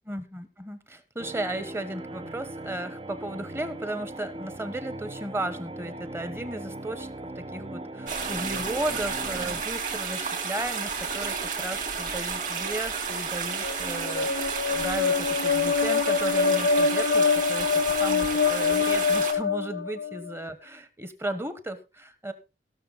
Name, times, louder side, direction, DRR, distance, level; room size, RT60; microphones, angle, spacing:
voice 1, 0.0-7.1 7.3-22.3, right 1 dB, 15° right, 12 dB, 1.1 m, -35 dB
sound 1, 1.2-9.6, right 2 dB, 30° right, 0.5 m, -39 dB
sound 2, 8.1-19.3, right 5 dB, 45° right, 3.6 m, -31 dB
sound 3, 13.5-20.4, left 5 dB, 70° left, 0.6 m, -25 dB
17.0 x 6.7 x 3.9 m, 0.29 s
head